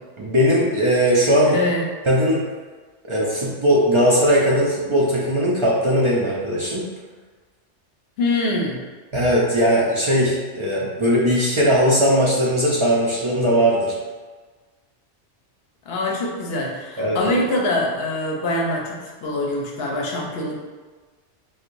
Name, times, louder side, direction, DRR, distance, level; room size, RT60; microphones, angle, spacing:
voice 1, 0.2-1.6 2.1-2.4 3.0-6.8 9.1-14.0 17.0-17.3, equal, 50° right, -5 dB, 0.3 m, -19 dB
voice 2, 1.5-1.9 8.2-8.8 15.9-20.5, left 2 dB, 65° left, -1 dB, 0.8 m, -24 dB
4.5 x 2.3 x 2.5 m, 1.3 s
omnidirectional pair, 1.2 m